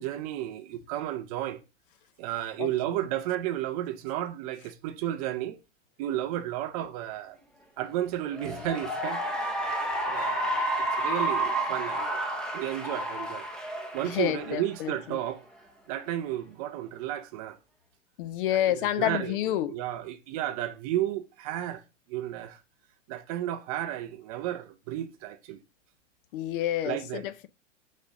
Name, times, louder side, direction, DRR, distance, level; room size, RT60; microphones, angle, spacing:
voice 1, 0.0-1.6 2.2-5.6 6.0-7.4 7.8-9.6 10.1-10.6 11.0-12.2 12.5-13.5 13.9-15.4 15.9-17.6 18.5-19.4 19.7-21.8 22.1-22.6 23.1-25.6 26.8-27.2, right 13 dB, 30° right, 0.5 m, -33 dB
voice 2, 2.6-3.0 8.5-8.7 9.8-9.9 11.4-11.5 14.0-15.2 18.2-19.8 26.3-27.5, left 12 dB, 45° left, 0.6 m, -29 dB
Cheering / Applause, 8.3-14.9, right 1 dB, ahead, 0.9 m, -31 dB
6.6 x 4.1 x 3.6 m
hypercardioid pair, 125°, 37 cm